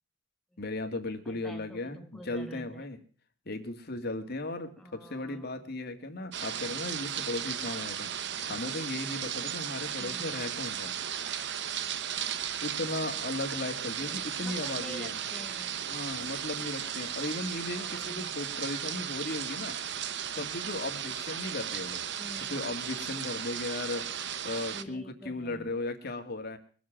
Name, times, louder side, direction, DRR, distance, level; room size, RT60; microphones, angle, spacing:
voice 1, 0.6-3.0 3.5-10.9 12.6-15.2 15.9-19.8 20.4-22.0 22.5-24.1 24.4-26.6, left 2 dB, 55° left, 6 dB, 2.1 m, -36 dB
voice 2, 1.2-2.9 4.8-5.7 10.0-10.4 14.0-15.8 17.7-18.4 22.2-22.6 24.7-25.7, equal, ahead, 4 dB, 0.9 m, -48 dB
memorial rain more, 6.3-24.8, right 9 dB, 65° right, 0.9 m, -35 dB
22.5 x 7.7 x 7.5 m, 0.43 s
head